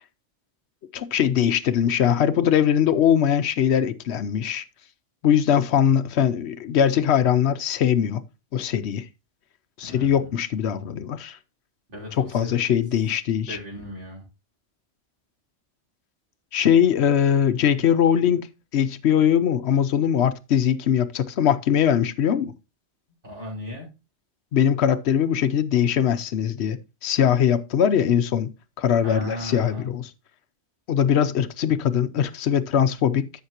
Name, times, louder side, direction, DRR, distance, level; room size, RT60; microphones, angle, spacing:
voice 1, 0.9-4.6 5.2-8.2 8.5-9.1 9.8-11.4 12.2-13.6 16.5-18.5 18.7-22.5 24.5-28.5 28.8-30.1 30.9-33.3, left 9 dB, 70° left, 1.0 m, -21 dB
voice 2, 9.8-10.3 11.9-12.6 13.5-14.2 23.2-23.9 29.0-29.9, left 1 dB, 45° right, 3.8 m, -36 dB
12.5 x 5.8 x 2.9 m
omnidirectional pair, 1.2 m